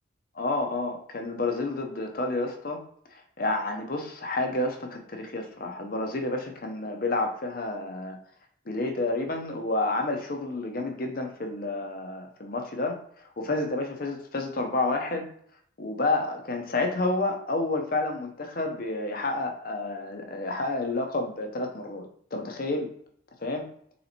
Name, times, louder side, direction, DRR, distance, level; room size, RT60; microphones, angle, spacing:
voice 1, 0.3-2.8 3.1-8.2 8.7-13.0 13.4-15.3 15.8-22.9 23.4-23.7, left 2 dB, 45° left, 4 dB, 0.6 m, -30 dB
4.2 x 3.8 x 2.8 m, 0.62 s
head